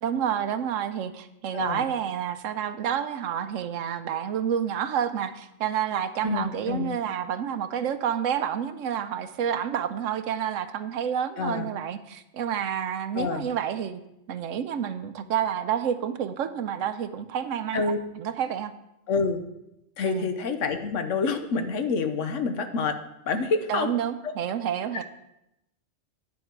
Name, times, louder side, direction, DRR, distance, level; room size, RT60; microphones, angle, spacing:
voice 1, 0.0-14.0 14.3-17.9 18.2-18.7 20.1-20.3 23.7-25.0, right 9 dB, 80° right, 11 dB, 1.0 m, -29 dB
voice 2, 1.5-1.8 6.2-7.0 11.4-11.7 13.1-13.5 17.7-18.0 19.1-19.4 20.0-22.9 23.3-23.9, left 4 dB, 70° left, 8 dB, 1.2 m, -27 dB
9.7 x 7.2 x 4.6 m, 0.88 s
omnidirectional pair, 1.3 m